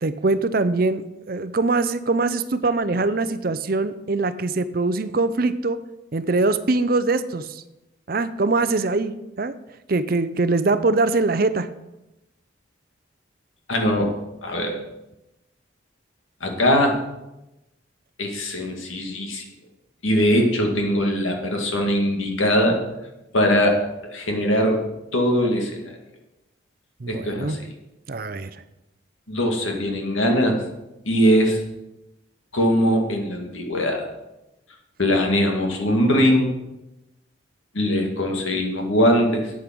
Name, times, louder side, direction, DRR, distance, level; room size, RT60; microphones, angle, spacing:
voice 1, 0.0-5.8 6.1-7.6 8.1-9.5 9.9-11.7 27.0-27.6 28.1-28.5, right 3 dB, 50° right, 12 dB, 0.6 m, -23 dB
voice 2, 13.7-14.1 14.4-14.7 16.4-17.0 18.2-19.4 20.0-22.8 23.3-23.8 24.1-24.8 25.1-25.8 27.1-27.6 29.3-30.6 31.0-31.6 32.5-34.1 35.0-36.5 37.7-39.5, equal, 90° left, 2 dB, 2.1 m, -21 dB
8.6 x 8.6 x 6.1 m, 0.95 s
head